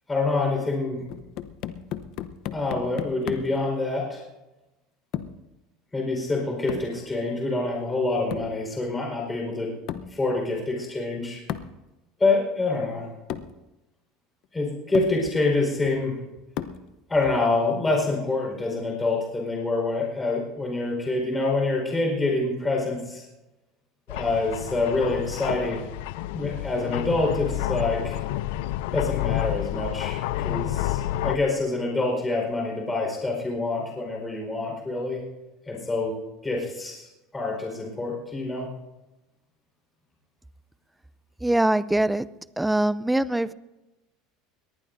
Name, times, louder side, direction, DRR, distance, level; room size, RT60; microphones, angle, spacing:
voice 1, 0.1-1.1 2.5-4.2 5.9-9.7 10.1-11.4 12.2-13.1 14.5-16.2 17.1-23.2 24.1-25.9 26.3-28.2 28.9-35.2 35.7-36.1 36.4-37.1 37.3-38.7, left 2 dB, 15° left, 0 dB, 4.5 m, -26 dB
sound 1, 1.1-3.6 5.1-5.5 6.7-7.0 8.3-8.6 9.9-10.2 11.5-11.8 12.8-12.9 13.3-13.6 14.4-14.5 14.9-15.2 16.6-16.9, left 10 dB, 55° left, 0.8 m, -34 dB
sound 2, 24.1-31.4, left 14 dB, 80° left, 0.5 m, -29 dB
voice 2, 41.4-42.2 42.6-43.5, right 1 dB, 5° right, 17 dB, 0.4 m, -22 dB
22.0 x 19.0 x 2.7 m, 1.0 s
supercardioid pair, 130°, 0 cm